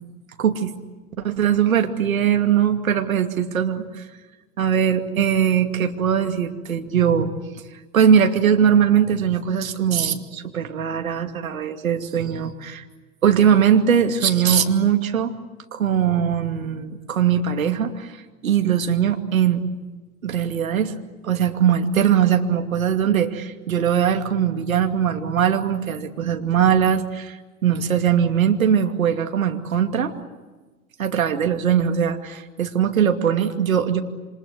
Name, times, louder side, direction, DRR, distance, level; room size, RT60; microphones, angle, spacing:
voice 1, 0.4-0.7 1.2-4.0 4.6-7.3 7.9-12.8 13.2-15.3 15.7-18.2 18.4-19.6 20.2-20.9 21.2-30.1 31.0-34.0, right 8 dB, 75° right, 5 dB, 2.6 m, -20 dB
28.5 x 26.0 x 8.1 m, 1.2 s
figure-of-eight pair, 90°, 42 cm